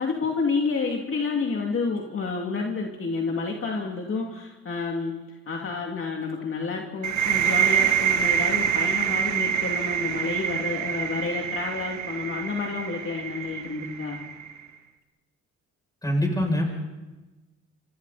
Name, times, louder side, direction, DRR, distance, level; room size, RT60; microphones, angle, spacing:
voice 1, 0.0-14.2, left 4 dB, 45° left, 0 dB, 2.8 m, -29 dB
sound 1, 7.0-14.6, right 8 dB, 70° right, 1.9 m, -26 dB
voice 2, 16.0-16.6, left 1 dB, 10° left, 0 dB, 7.3 m, -23 dB
27.5 x 26.0 x 4.3 m, 1.2 s
cardioid pair, 90°, 30 cm